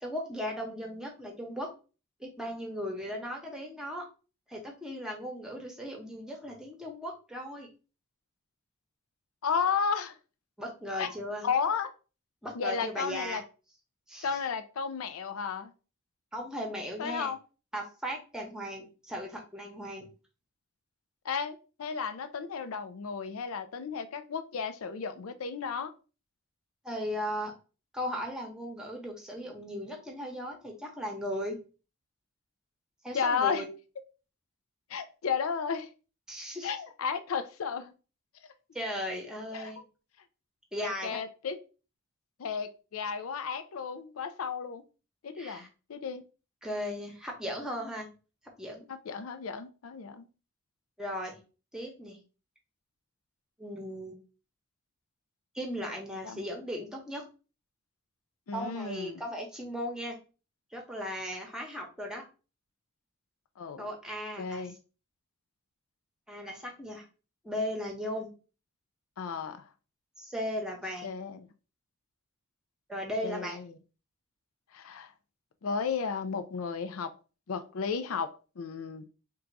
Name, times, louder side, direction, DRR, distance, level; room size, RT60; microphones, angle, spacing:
voice 1, 0.0-1.7 2.2-4.1 4.5-7.7 10.6-11.5 12.4-13.4 14.1-14.4 16.3-17.3 17.7-20.1 26.8-27.5 27.9-31.6 33.0-33.6 36.3-36.7 38.7-39.8 40.7-41.2 45.4-45.7 46.6-48.1 48.6-48.9 51.0-51.4 51.7-52.2 53.6-54.1 55.5-57.2 58.5-60.2 60.7-62.2 63.8-64.7 66.3-67.1 67.4-68.3 70.2-71.1 72.9-73.6, equal, 5° right, 0.9 m, -37 dB
voice 2, 9.4-10.1 11.0-11.1 11.4-11.9 12.5-13.4 14.2-15.7 17.0-17.4 21.2-25.9 33.1-33.6 34.9-35.9 36.6-37.9 39.5-39.7 40.8-41.6 42.4-44.8 45.2-46.2 48.9-50.3 56.2-56.4 58.5-59.2 63.6-63.9 64.4-64.8 69.2-69.6 71.0-71.5 73.2-73.7 74.7-75.1 75.6-77.1 77.5-79.1, left 6 dB, 80° left, 0.5 m, -33 dB
3.8 x 2.3 x 4.5 m
head